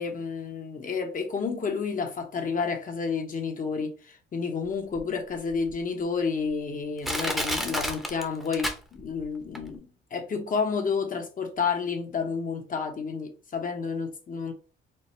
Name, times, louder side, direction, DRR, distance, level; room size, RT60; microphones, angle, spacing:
voice 1, 0.0-14.5, left 5 dB, 45° left, 1.0 m, -30 dB
Crushing, 5.0-5.1 5.7-5.8 6.5-6.6 7.0-9.2 9.6-9.7, equal, ahead, 0.8 m, -30 dB
4.4 x 2.1 x 3.2 m
cardioid pair, 90°, 20 cm